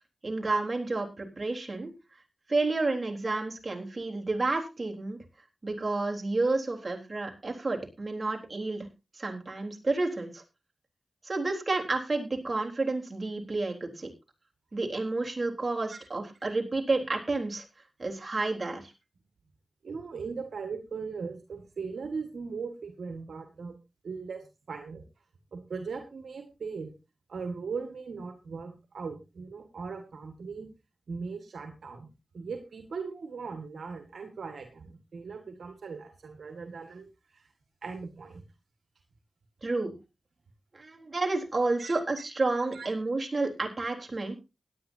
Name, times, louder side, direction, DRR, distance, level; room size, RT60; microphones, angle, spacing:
voice 1, 0.2-1.9 2.5-5.2 5.6-8.9 9.2-10.4 11.2-14.1 14.7-17.7 18.0-18.9 39.6-39.9 40.7-44.4, right 3 dB, 45° right, 1 dB, 3.7 m, -30 dB
voice 2, 19.8-23.7 24.0-24.4 24.7-25.0 25.5-26.9 27.3-30.7 31.1-32.1 32.3-37.4 37.8-38.4 41.8-41.9 42.7-42.9, right 5 dB, 85° right, 5 dB, 1.7 m, -39 dB
17.0 x 11.0 x 2.7 m, 0.27 s
cardioid pair, 45°, 0 cm